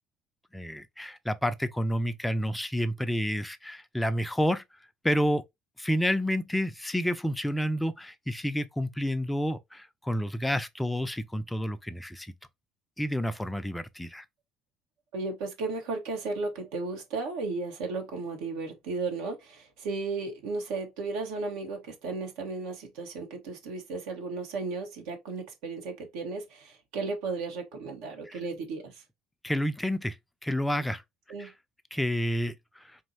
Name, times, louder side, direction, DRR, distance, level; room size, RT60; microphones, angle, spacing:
voice 1, 0.5-4.6 5.0-5.4 5.8-12.3 13.0-14.2 28.3-28.4 29.4-30.2 30.4-31.0 31.4-31.5 31.9-32.8, equal, 5° left, 0.6 m, -29 dB
voice 2, 15.1-29.0 31.3-31.5, right 3 dB, 65° right, 1.2 m, -34 dB
4.4 x 3.0 x 2.6 m
figure-of-eight pair, 60°, 0 cm